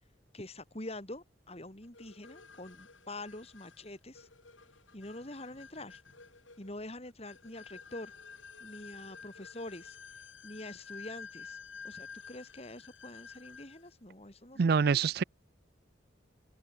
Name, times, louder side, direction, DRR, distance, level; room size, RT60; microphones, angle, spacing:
voice 1, 0.3-4.3 4.9-6.0 6.6-8.1 8.6-10.0 10.4-11.6 11.8-15.2, left 1 dB, 30° left, 2.7 m, -45 dB
sound 1, 1.9-13.9, left 6 dB, 85° left, 4.5 m, -51 dB
voice 2, 14.6-15.2, right 5 dB, 55° right, 0.4 m, -25 dB
open air
head